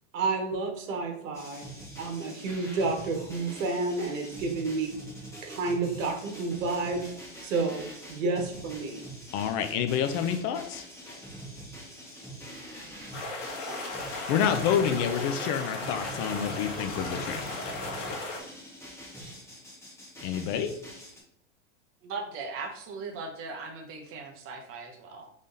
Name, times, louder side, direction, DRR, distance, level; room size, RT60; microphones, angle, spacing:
voice 1, 0.1-1.7 2.0-4.9 5.4-7.1 7.4-9.0, right 3 dB, 75° right, 3 dB, 1.4 m, -30 dB
sound 1, 1.3-21.2, right 1 dB, 10° left, 1.5 m, -44 dB
voice 2, 9.3-10.8 14.3-17.5 20.2-20.8, left 8 dB, 35° left, 9 dB, 0.5 m, -28 dB
sound 2, 13.1-18.4, left 2 dB, 70° left, 1.6 m, -36 dB
voice 3, 22.0-25.3, right 4 dB, 35° right, 3 dB, 1.0 m, -39 dB
3.7 x 3.6 x 3.9 m, 0.72 s
supercardioid pair, 135°, 39 cm